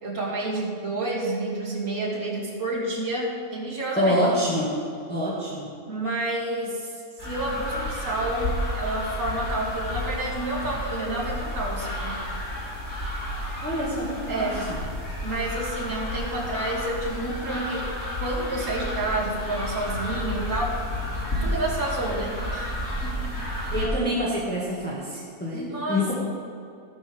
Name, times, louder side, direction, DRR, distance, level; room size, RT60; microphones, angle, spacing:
voice 1, 0.0-4.2 5.9-12.2 14.3-14.6 15.2-17.9 18.2-20.8 21.4-23.4 25.5-26.1, right 1 dB, 65° right, -8 dB, 3.0 m, -29 dB
voice 2, 4.0-4.7 5.1-5.7 13.6-14.7 23.7-26.1, equal, 5° left, -7 dB, 1.9 m, -26 dB
sound 1, 7.2-23.9, left 1 dB, 75° left, 3.5 m, -31 dB
14.5 x 12.5 x 3.5 m, 2.4 s
omnidirectional pair, 1.5 m